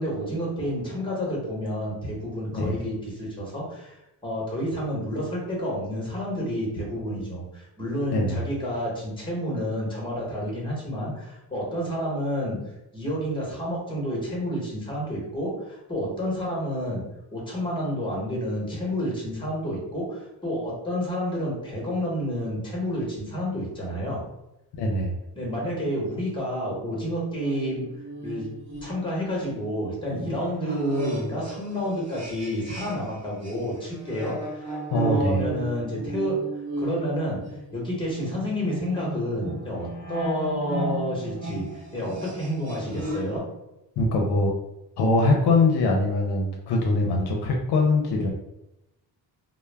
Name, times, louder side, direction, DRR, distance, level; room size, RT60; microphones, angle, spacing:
voice 1, 0.0-4.0 4.2-12.6 12.9-17.0 17.3-24.2 25.3-27.9 28.2-28.5 28.8-34.7 35.0-36.4 36.8-37.4 37.7-43.4, equal, 10° left, -3 dB, 0.9 m, -29 dB
voice 2, 24.8-25.1 34.9-35.4 44.0-44.5 45.0-48.3, left 2 dB, 70° left, 1 dB, 0.6 m, -22 dB
sound 1, 27.4-33.1 33.4-43.4, right 1 dB, 40° right, 1.0 m, -35 dB
2.2 x 2.1 x 3.2 m, 0.91 s
cardioid pair, 125°, 42 cm